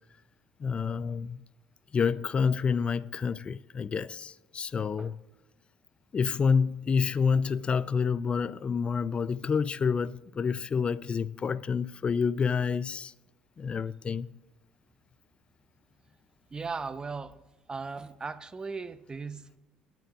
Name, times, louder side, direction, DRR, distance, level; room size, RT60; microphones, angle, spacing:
voice 1, 0.6-1.4 1.9-5.1 6.1-13.1 13.6-14.3, left 6 dB, 40° left, 0.5 m, -28 dB
voice 2, 16.5-17.4 17.7-19.6, right 4 dB, 25° right, 0.8 m, -37 dB
21.0 x 9.2 x 2.4 m
hypercardioid pair, 65°, 3 cm